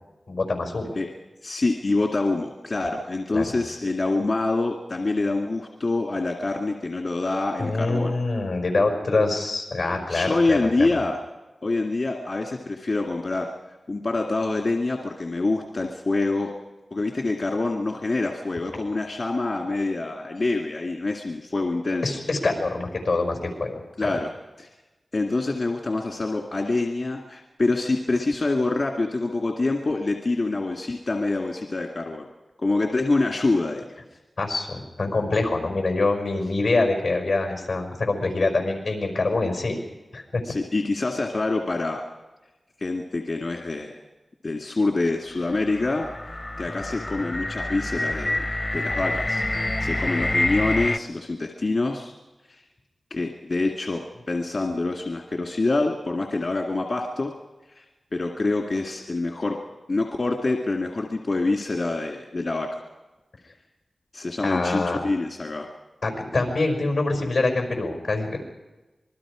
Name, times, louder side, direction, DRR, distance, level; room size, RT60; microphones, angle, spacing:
voice 1, 0.3-0.9 3.3-3.5 7.6-10.9 22.0-24.1 34.4-39.8 40.1-40.4 64.4-65.0 66.0-68.4, left 3 dB, 90° left, 2 dB, 5.3 m, -25 dB
voice 2, 1.4-8.2 10.1-11.2 11.6-13.5 13.9-16.5 16.9-22.1 24.0-24.3 24.6-24.7 25.1-32.3 32.6-33.9 40.4-42.0 42.8-44.0 44.4-46.1 46.6-48.5 48.7-52.1 52.5-52.6 53.1-57.3 57.7-57.8 58.1-59.6 59.9-62.8 64.1-65.7, left 2 dB, 60° left, 1 dB, 2.0 m, -26 dB
sound 1, 45.4-51.0, left 1 dB, 35° left, 0.7 m, -27 dB
26.5 x 21.0 x 5.0 m, 1.1 s
wide cardioid pair, 65°, 0 cm